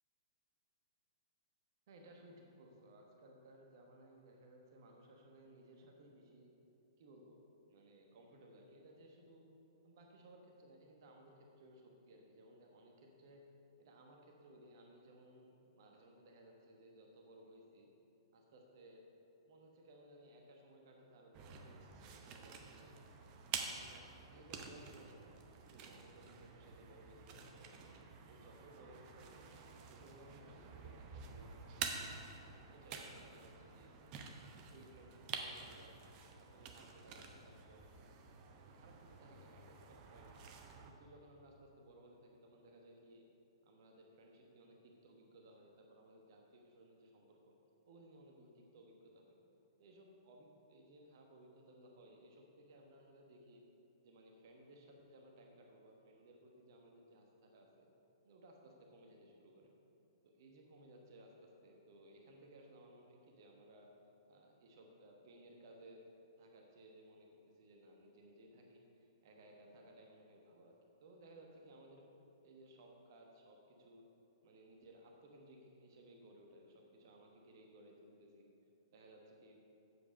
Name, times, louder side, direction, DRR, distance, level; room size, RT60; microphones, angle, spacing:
voice 1, 1.9-6.5 7.0-7.4 7.7-9.4 9.8-13.4 13.8-17.9 18.3-19.0 19.5-22.9 23.6-27.9 28.3-32.3 32.7-33.9 34.7-35.9 36.3-37.8 38.4-40.3 40.8-43.2 43.6-47.5 47.8-49.3 49.8-53.6 54.0-57.9 58.2-59.7 60.2-63.9 64.3-66.0 66.4-72.0 72.4-74.0 74.4-78.5 78.9-79.6, right 1 dB, 50° right, 1 dB, 1.2 m, -61 dB
sound 1, 21.3-40.9, right 5 dB, 30° right, 0.8 m, -49 dB
8.4 x 7.2 x 5.1 m, 2.9 s
figure-of-eight pair, 115°, 3 cm